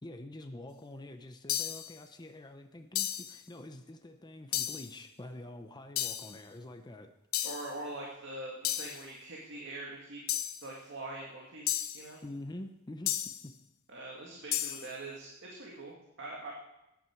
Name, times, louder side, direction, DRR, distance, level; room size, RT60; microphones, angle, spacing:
voice 1, 0.0-7.1 12.2-13.5, left 1 dB, 20° left, 6 dB, 0.7 m, -46 dB
sound 1, 1.5-1.9 2.9-3.4 4.5-4.9 6.0-6.4 7.3-7.7 8.6-9.0 10.3-10.7 11.7-12.1 13.1-13.5 14.5-14.9, left 12 dB, 75° left, 0.7 m, -33 dB
voice 2, 7.4-10.2 10.6-12.2 13.9-16.5, right 2 dB, 60° right, -2 dB, 2.0 m, -43 dB
14.0 x 9.7 x 4.5 m, 0.91 s
head